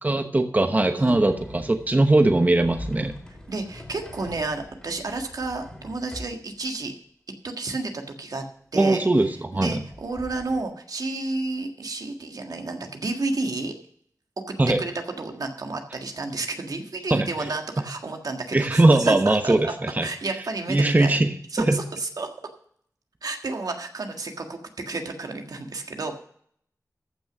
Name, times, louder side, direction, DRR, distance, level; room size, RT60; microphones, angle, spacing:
voice 1, 0.0-3.1 8.7-9.8 14.6-14.8 17.1-17.5 18.5-20.1 20.7-21.3 21.7-21.8, right 2 dB, 25° right, 7 dB, 1.0 m, -20 dB
sound 1, 1.0-6.4 9.8-10.6, left 1 dB, 10° left, 2.8 m, -42 dB
voice 2, 3.5-6.9 7.4-8.4 8.7-9.0 9.5-13.7 14.5-14.9 15.2-19.7 20.0-21.2 21.5-22.3 23.2-26.1, right 3 dB, 75° right, 4 dB, 1.7 m, -31 dB
14.0 x 6.2 x 6.0 m, 0.63 s
wide cardioid pair, 90°, 6 cm